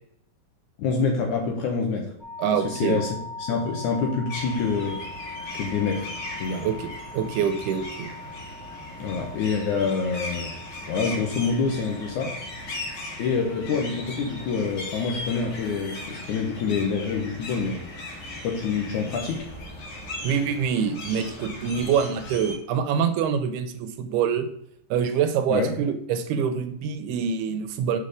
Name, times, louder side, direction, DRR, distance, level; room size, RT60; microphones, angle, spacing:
voice 1, 0.8-2.1 2.5-3.2 3.5-5.0 5.5-6.1 6.4-6.7 9.0-10.5 10.9-12.4 13.2-17.8 18.4-19.5 25.5-25.8, left 5 dB, 70° left, 1 dB, 2.0 m, -26 dB
sound 1, 2.2-16.2, left 3 dB, 15° right, 1.8 m, -42 dB
voice 2, 2.4-3.0 6.6-8.1 20.2-24.5 24.9-28.0, right 7 dB, 85° right, 9 dB, 2.7 m, -25 dB
sound 2, 4.3-22.5, left 1 dB, 45° left, 2.2 m, -38 dB
7.0 x 4.3 x 4.9 m, 0.71 s
omnidirectional pair, 4.5 m